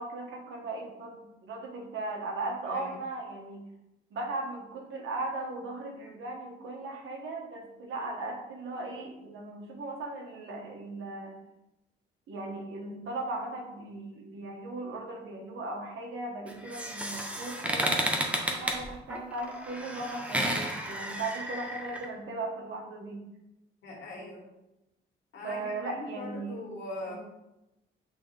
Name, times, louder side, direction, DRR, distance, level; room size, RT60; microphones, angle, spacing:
voice 1, 0.0-3.6 4.1-11.3 12.3-23.2 25.4-26.6 27.1-27.2, right 2 dB, 70° right, 1 dB, 1.4 m, -38 dB
voice 2, 2.7-3.0 23.8-24.5 25.3-27.2, left 2 dB, 70° left, -2 dB, 2.2 m, -41 dB
sound 1, 16.5-22.1, right 1 dB, 5° right, 0.8 m, -32 dB
8.3 x 3.6 x 3.4 m, 0.93 s
cardioid pair, 120°, 21 cm